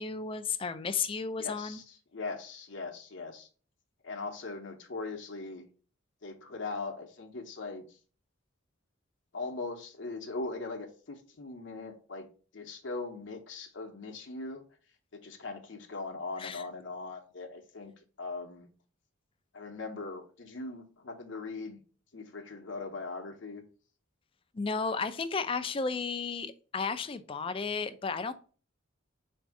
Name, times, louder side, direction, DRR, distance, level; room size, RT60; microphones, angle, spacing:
voice 1, 0.0-1.8 16.4-16.6 24.5-28.3, left 5 dB, 25° left, 0.4 m, -33 dB
voice 2, 1.4-3.5 4.0-5.6 6.2-8.0 9.3-14.6 15.1-17.9 18.2-18.7 19.5-21.8 22.1-23.6, left 3 dB, 65° left, 0.7 m, -40 dB
4.2 x 2.6 x 4.7 m
head